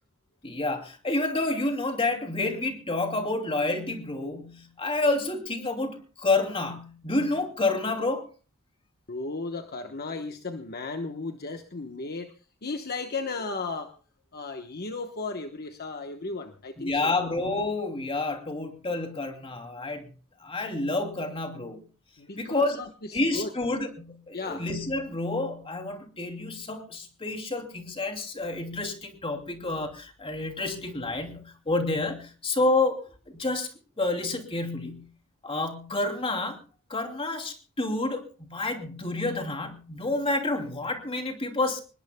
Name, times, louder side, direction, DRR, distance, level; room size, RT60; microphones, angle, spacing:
voice 1, 0.4-8.3 16.8-20.1 20.4-21.8 22.4-22.8 23.1-33.0 33.3-33.7 34.0-35.1 35.4-36.6 36.9-41.8, left 2 dB, 25° left, 4 dB, 2.8 m, -29 dB
voice 2, 9.1-12.3 12.6-13.9 14.3-17.2 22.2-23.5 24.3-24.6, left 3 dB, 45° left, 6 dB, 1.1 m, -35 dB
26.0 x 20.5 x 2.3 m, 0.37 s
head